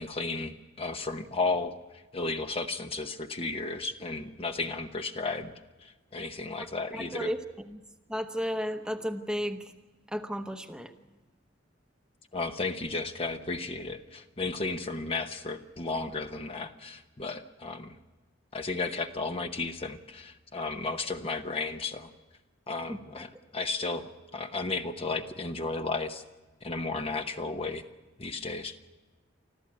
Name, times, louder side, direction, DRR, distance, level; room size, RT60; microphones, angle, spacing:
voice 1, 0.0-5.5 5.8-7.3 12.3-17.9 18.5-22.1 22.7-26.2 26.6-27.8 28.2-28.7, left 3 dB, 30° left, 7 dB, 0.9 m, -34 dB
voice 2, 6.9-7.4 7.7-7.8 8.1-9.7 10.1-10.9 22.9-23.0, equal, 5° right, 6 dB, 1.0 m, -33 dB
25.0 x 14.5 x 8.6 m, 1.2 s
head